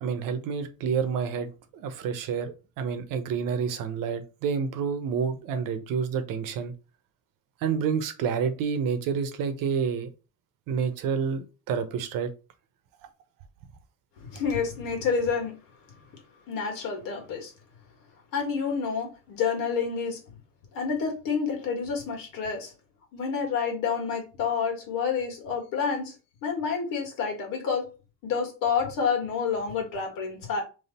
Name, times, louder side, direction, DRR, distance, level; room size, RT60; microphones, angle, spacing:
voice 1, 0.0-6.7 7.6-10.1 10.7-12.3, right 6 dB, 80° right, 0.9 m, -29 dB
voice 2, 14.2-15.6 16.5-17.5 18.3-20.2 20.7-22.7 23.1-26.1 26.4-27.9 28.2-30.6, left 6 dB, 80° left, 1.9 m, -29 dB
3.6 x 3.2 x 4.2 m
cardioid pair, 160°, 33 cm